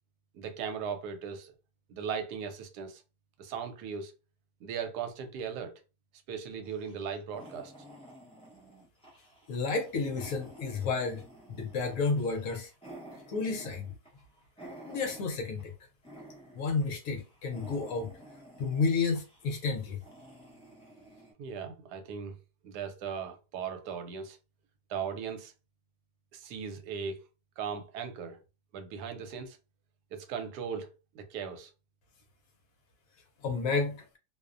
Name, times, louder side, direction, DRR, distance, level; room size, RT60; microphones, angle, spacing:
voice 1, 0.3-1.5 1.9-3.0 3.4-4.1 4.6-5.7 6.3-7.7 21.4-22.3 22.6-24.4 24.9-25.5 26.3-27.2 27.6-28.4 28.7-29.6 30.1-30.9 31.1-31.7, right 6 dB, 80° right, 1.1 m, -38 dB
sound 1, 6.6-15.7 16.0-16.8 17.1-21.3, right 1 dB, 10° left, 0.3 m, -52 dB
voice 2, 9.5-11.2 11.5-12.7 13.3-13.9 14.9-15.7 16.5-18.2 18.6-20.0 33.4-34.1, left 4 dB, 70° left, 0.9 m, -31 dB
2.6 x 2.0 x 2.4 m
omnidirectional pair, 1.7 m